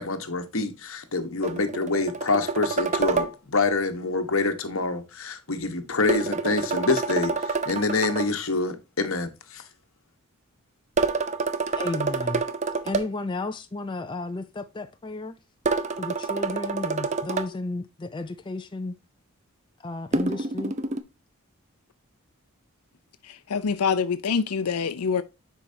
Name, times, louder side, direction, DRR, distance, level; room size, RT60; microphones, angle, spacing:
voice 1, 0.0-9.6, left 3 dB, 60° left, 1.3 m, -26 dB
sound 1, 1.4-3.3 6.1-8.3 11.0-13.1 15.7-17.5 20.1-21.0, right 4 dB, 30° right, 0.6 m, -27 dB
voice 2, 11.8-12.4 12.8-15.3 16.0-18.9 19.8-20.8, left 2 dB, 20° left, 0.4 m, -33 dB
voice 3, 23.5-25.2, left 6 dB, 85° left, 0.6 m, -25 dB
10.0 x 4.7 x 2.7 m
head